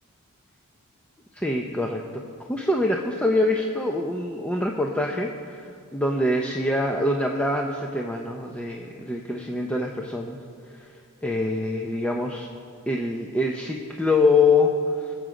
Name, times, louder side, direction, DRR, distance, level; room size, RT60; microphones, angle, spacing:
voice 1, 1.3-2.0 2.5-10.4 10.7-10.9 11.2-12.5 12.9-14.7 15.0-15.1, left 2 dB, 5° left, 1 dB, 0.6 m, -24 dB
22.0 x 7.7 x 4.9 m, 2.3 s
head